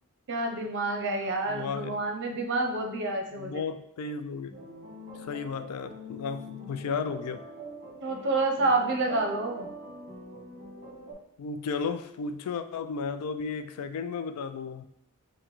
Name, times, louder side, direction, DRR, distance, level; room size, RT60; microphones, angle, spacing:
voice 1, 0.3-3.6 8.0-9.7, right 2 dB, 55° right, 3 dB, 0.6 m, -28 dB
voice 2, 1.5-2.0 3.4-4.6 5.2-7.5 11.4-14.9, left 5 dB, 80° left, 9 dB, 0.3 m, -34 dB
sound 1, 4.5-11.1, equal, 30° right, 1.1 m, -44 dB
5.7 x 2.1 x 3.0 m, 0.74 s
head